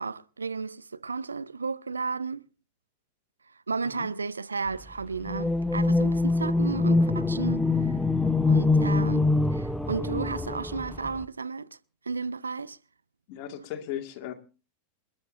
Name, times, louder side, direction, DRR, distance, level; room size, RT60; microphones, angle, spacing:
voice 1, 0.0-2.4 3.7-8.0 8.5-11.7 12.0-12.8, right 4 dB, 75° right, 0.6 m, -33 dB
sound 1, 5.2-11.2, left 3 dB, 5° left, 0.7 m, -24 dB
voice 2, 13.3-14.3, left 11 dB, 45° left, 2.0 m, -36 dB
28.0 x 10.5 x 2.6 m
figure-of-eight pair, 90°, 0 cm